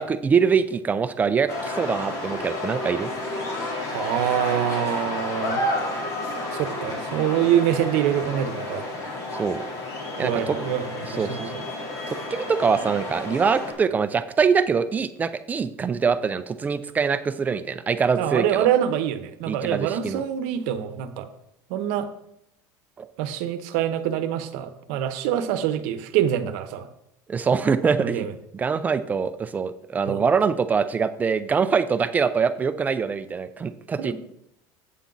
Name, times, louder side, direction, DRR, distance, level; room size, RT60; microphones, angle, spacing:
voice 1, 0.0-3.1 9.4-9.6 10.2-10.6 11.0-11.5 12.1-18.7 19.5-20.2 23.0-23.1 27.3-28.3 28.5-34.1, right 6 dB, 15° right, 12 dB, 0.4 m, -24 dB
sound 1, 1.5-13.7, left 2 dB, 35° left, 2.4 m, -31 dB
voice 2, 3.9-5.6 6.5-8.9 10.2-11.5 18.2-21.3 21.7-22.1 23.2-26.9 28.0-28.3 30.1-30.2 34.0-34.1, right 10 dB, 70° right, 11 dB, 0.8 m, -25 dB
8.3 x 7.1 x 3.9 m, 0.78 s
cardioid pair, 155°, 9 cm